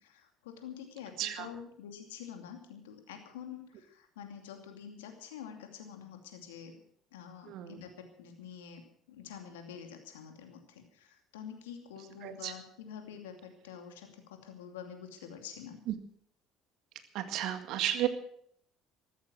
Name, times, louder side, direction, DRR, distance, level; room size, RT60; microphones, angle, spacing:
voice 1, 0.0-6.7 7.1-8.8 9.1-15.8, left 8 dB, 80° left, 5 dB, 2.6 m, -47 dB
voice 2, 7.5-7.8 12.2-12.5 15.9-16.0 17.1-18.1, right 12 dB, 65° right, 9 dB, 1.9 m, -33 dB
14.5 x 14.0 x 6.2 m, 0.64 s
hypercardioid pair, 60°, 0 cm